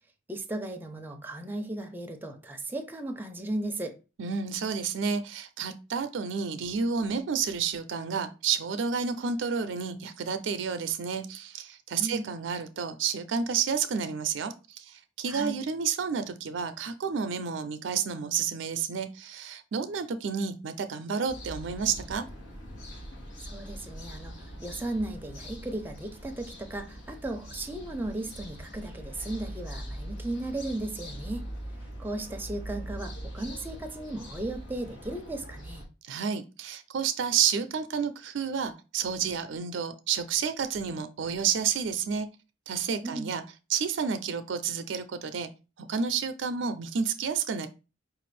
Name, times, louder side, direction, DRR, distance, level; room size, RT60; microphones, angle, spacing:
voice 1, 0.3-4.0 11.9-12.3 15.3-15.6 23.4-24.4 24.6-31.4 32.0-35.9 43.0-43.3, right 1 dB, 10° right, 0.5 m, -36 dB
voice 2, 4.2-22.2 36.1-42.3 42.7-43.4 43.7-45.5 45.8-47.7, right 6 dB, 75° right, 0.4 m, -30 dB
sound 1, 21.3-35.9, equal, 80° left, 1.2 m, -42 dB
4.7 x 2.5 x 3.2 m
head